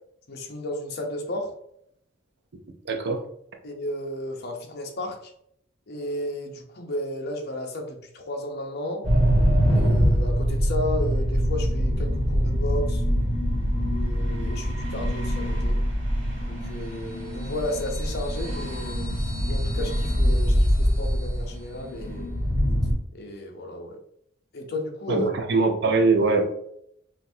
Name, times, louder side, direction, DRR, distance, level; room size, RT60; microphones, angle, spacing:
voice 1, 0.3-1.5 3.6-5.3 5.9-9.1 9.7-13.0 13.7-15.8 16.5-22.3 23.1-24.0 24.5-25.3, left 1 dB, 55° left, 2 dB, 0.7 m, -33 dB
voice 2, 2.9-3.2 25.1-26.5, right 3 dB, 60° right, 5 dB, 0.6 m, -22 dB
sound 1, 9.0-22.9, equal, 80° right, 1.5 m, -24 dB
sound 2, 16.6-22.1, left 1 dB, 15° left, 1.0 m, -46 dB
5.7 x 2.5 x 2.7 m, 0.73 s
head